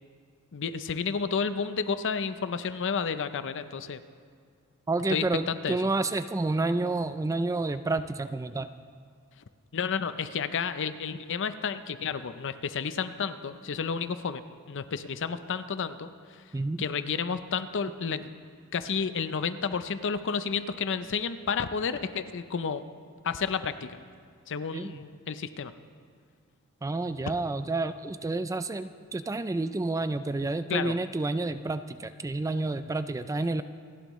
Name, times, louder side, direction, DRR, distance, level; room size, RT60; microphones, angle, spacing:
voice 1, 0.5-4.0 5.1-5.8 9.7-14.4 14.7-16.1 16.8-18.3 18.7-22.8 23.2-24.0 24.5-25.7 27.3-27.4 30.7-30.9, left 6 dB, 55° left, 11 dB, 0.6 m, -31 dB
voice 2, 4.9-8.7 16.5-16.8 24.7-25.0 26.8-33.6, right 2 dB, 15° right, 11 dB, 0.3 m, -29 dB
27.5 x 11.5 x 3.1 m, 2.1 s
head